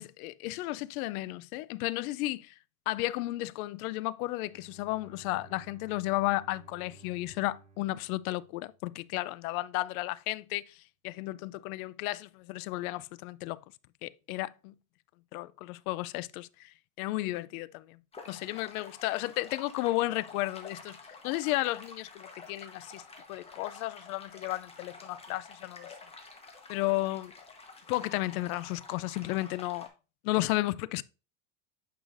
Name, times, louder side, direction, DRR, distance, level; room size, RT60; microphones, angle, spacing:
voice 1, 0.0-2.5 2.9-10.8 11.0-13.6 14.0-14.7 15.3-16.7 17.0-18.0 18.3-21.0 21.2-23.0 23.3-25.9 26.7-27.3 27.9-29.9 30.2-31.0, left 18 dB, 80° left, 0.5 m, -33 dB
Bowed string instrument, 4.4-9.1, right 4 dB, 15° right, 0.7 m, -56 dB
sound 1, 18.1-29.9, left 4 dB, 15° left, 1.1 m, -49 dB
8.9 x 5.0 x 2.5 m
supercardioid pair, 145°, 42 cm